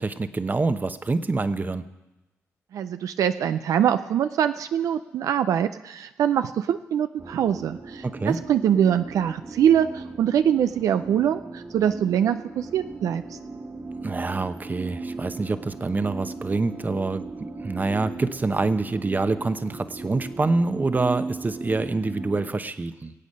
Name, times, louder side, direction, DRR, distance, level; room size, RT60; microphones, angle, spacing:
voice 1, 0.0-1.9 8.0-8.4 14.0-23.1, right 3 dB, 30° right, 10 dB, 0.9 m, -26 dB
voice 2, 2.7-13.2, right 9 dB, 80° right, 10 dB, 0.4 m, -23 dB
sound 1, 7.2-22.5, right 3 dB, 50° right, 2.1 m, -37 dB
23.0 x 8.3 x 5.4 m, 1.0 s
cardioid pair, 60°, 6 cm